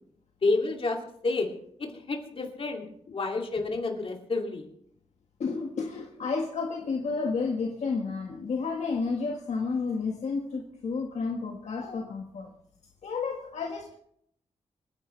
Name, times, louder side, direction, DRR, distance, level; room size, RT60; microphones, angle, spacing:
voice 1, 0.4-1.5 1.8-2.9 3.1-4.7, left 3 dB, 50° left, 1 dB, 2.7 m, -29 dB
voice 2, 5.4-12.5 13.0-14.0, left 4 dB, 70° left, 0 dB, 1.6 m, -31 dB
26.5 x 10.0 x 3.3 m, 0.69 s
wide cardioid pair, 100°, 12 cm